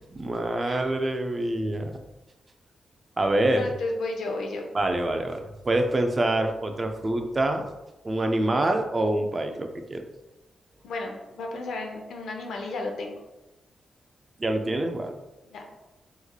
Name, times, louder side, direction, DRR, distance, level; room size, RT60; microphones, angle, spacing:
voice 1, 0.0-1.9 3.2-3.7 4.7-7.6 8.0-10.1 14.4-15.1, right 1 dB, 25° right, 5 dB, 0.3 m, -26 dB
voice 2, 3.6-4.6 10.8-13.1 15.5-15.6, left 2 dB, 90° left, 2 dB, 0.6 m, -33 dB
3.5 x 3.1 x 2.3 m, 1.0 s
wide cardioid pair, 145°, 0 cm